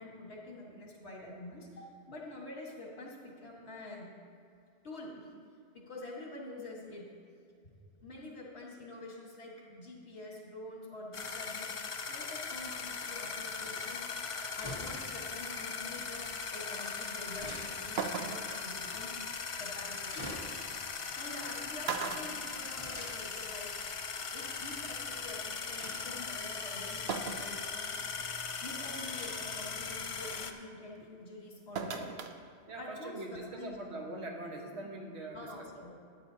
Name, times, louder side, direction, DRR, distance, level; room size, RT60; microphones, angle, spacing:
voice 1, 0.0-4.1 4.8-5.3 5.7-7.1 8.0-11.7 12.1-14.1 14.6-19.1 19.6-20.3 21.2-23.7 24.3-28.0 28.6-32.0 32.8-33.7 35.3-35.9, left 2 dB, 80° left, -2 dB, 2.0 m, -46 dB
sound 1, 11.1-30.5, left 5 dB, 45° left, 0.4 m, -39 dB
sound 2, 12.4-25.0 25.7-26.4 26.9-29.4 29.9-30.0 30.2-30.3, equal, 25° right, 1.6 m, -51 dB
sound 3, 18.0-18.6 20.2-20.3 21.3-21.5 21.8-23.2 23.6-23.7 24.9-25.0 27.1-27.6 28.1-28.2 28.8-29.1 31.8-32.4 32.7-32.8, right 5 dB, 70° right, 0.9 m, -37 dB
voice 2, 32.7-35.7, right 2 dB, 85° right, 0 dB, 1.6 m, -42 dB
13.5 x 9.0 x 2.8 m, 2.4 s
omnidirectional pair, 1.1 m